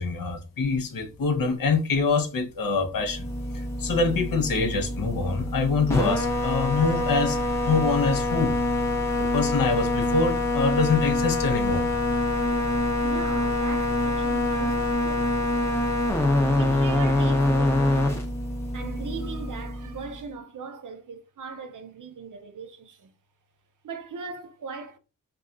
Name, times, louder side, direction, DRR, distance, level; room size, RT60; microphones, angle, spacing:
voice 1, 0.0-3.3 3.5-7.4 7.7-8.6 9.1-11.9, left 4 dB, 80° left, 0.6 m, -25 dB
sound 1, 3.0-20.2, left 2 dB, 10° left, 0.6 m, -25 dB
voice 2, 12.8-15.3 16.0-16.1 16.5-18.3 18.7-23.1 23.8-25.0, right 5 dB, 65° right, 0.6 m, -39 dB
2.3 x 2.2 x 3.7 m
wide cardioid pair, 145°, 33 cm